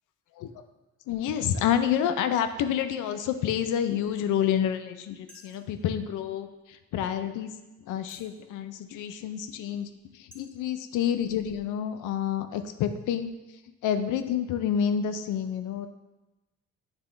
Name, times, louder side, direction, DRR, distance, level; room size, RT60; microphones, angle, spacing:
voice 1, 1.1-7.5 7.9-13.3 13.8-15.9, left 9 dB, 85° left, 9 dB, 0.5 m, -28 dB
sound 1, 5.3-5.7 6.5-6.6 7.1-7.2 8.0-8.4 9.0-9.1 9.8-9.9 10.3-10.4, left 1 dB, 5° left, 1.1 m, -53 dB
8.2 x 3.6 x 3.3 m, 1.1 s
cardioid pair, 90°, 30 cm